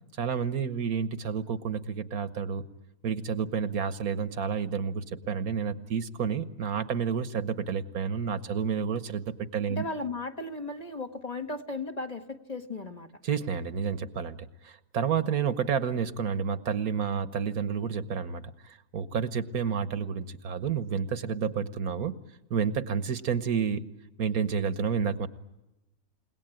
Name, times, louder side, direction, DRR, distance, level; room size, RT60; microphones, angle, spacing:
voice 1, 0.2-2.6 3.0-9.8 13.2-14.4 14.6-22.1 22.5-23.9 24.2-25.3, right 7 dB, 80° right, 12 dB, 1.6 m, -30 dB
voice 2, 9.7-13.1, left 2 dB, 30° left, 5 dB, 1.5 m, -36 dB
30.0 x 18.0 x 9.0 m, 0.97 s
omnidirectional pair, 1.5 m